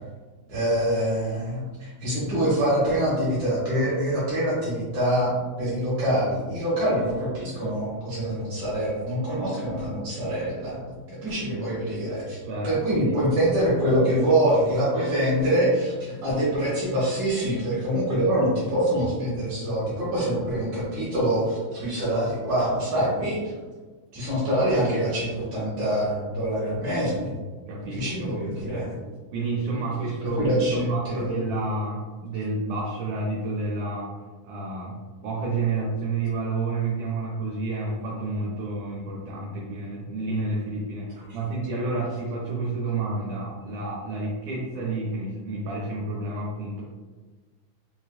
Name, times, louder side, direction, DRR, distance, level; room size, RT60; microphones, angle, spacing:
voice 1, 0.5-5.3 5.6-12.4 12.6-15.9 16.2-23.4 24.1-27.3 27.9-28.9 29.7-29.8 30.2-31.3, right 1 dB, 65° right, -9 dB, 2.0 m, -25 dB
voice 2, 12.4-13.2 27.7-28.3 29.3-34.1 34.4-35.0 35.2-46.8, right 3 dB, 85° right, -4 dB, 1.7 m, -30 dB
5.9 x 2.4 x 2.2 m, 1.4 s
omnidirectional pair, 4.2 m